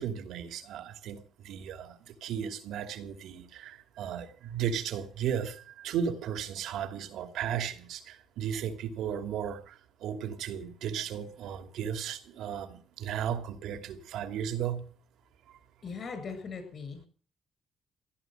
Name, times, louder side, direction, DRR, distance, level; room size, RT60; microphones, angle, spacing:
voice 1, 0.0-14.9, right 8 dB, 85° right, 2.6 m, -35 dB
voice 2, 15.8-17.1, left 5 dB, 50° left, 7.5 m, -39 dB
16.5 x 11.5 x 7.8 m
cardioid pair, 90°, 0 cm